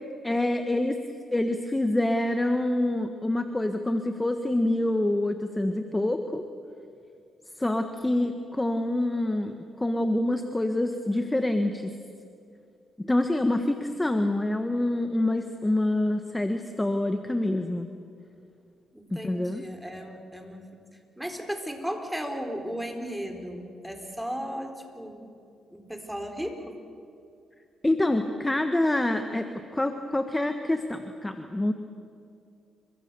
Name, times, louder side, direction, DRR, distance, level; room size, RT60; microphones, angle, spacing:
voice 1, 0.2-1.0 1.3-6.4 7.6-11.9 13.0-17.9 19.1-19.6 27.8-29.5 29.7-31.7, left 1 dB, 15° left, 7 dB, 1.4 m, -26 dB
voice 2, 18.9-20.7 21.2-25.3 25.7-26.8, equal, 5° right, 4 dB, 4.1 m, -35 dB
29.5 x 24.0 x 6.9 m, 2.5 s
cardioid pair, 90°, 0 cm